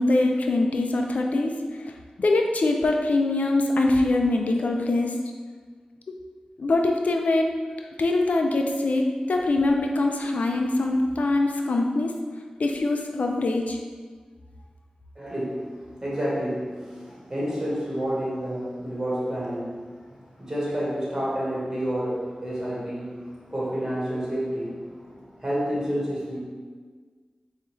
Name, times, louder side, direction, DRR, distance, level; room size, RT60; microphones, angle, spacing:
voice 1, 0.0-1.5 1.9-2.0 2.2-5.1 6.6-7.5 8.0-12.1 12.6-13.8, left 2 dB, 80° left, 2 dB, 0.3 m, -23 dB
voice 2, 15.1-19.9 20.4-26.4, equal, 25° right, -7 dB, 1.5 m, -29 dB
4.8 x 2.4 x 3.0 m, 1.5 s
cardioid pair, 50°, 2 cm